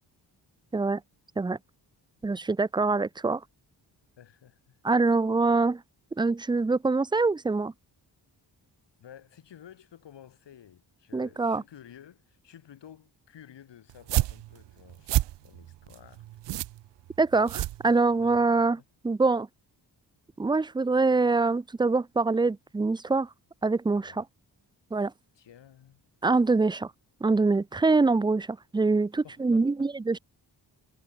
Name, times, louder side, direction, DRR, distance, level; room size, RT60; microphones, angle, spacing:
voice 1, 2.2-3.4 4.8-5.8 6.2-7.7 11.1-11.6 17.2-19.5 20.4-23.3 23.6-24.2 24.9-25.1 26.2-26.9 27.2-30.2, right 3 dB, 10° right, 0.4 m, -24 dB
voice 2, 4.2-4.8 9.0-15.2 15.4-16.3 18.2-18.5 18.8-18.9 23.9-24.2 25.3-26.0 29.2-29.9, left 9 dB, 75° left, 4.0 m, -52 dB
sound 1, 13.9-18.4, right 15 dB, 75° right, 0.6 m, -30 dB
wide cardioid pair, 160°, 42 cm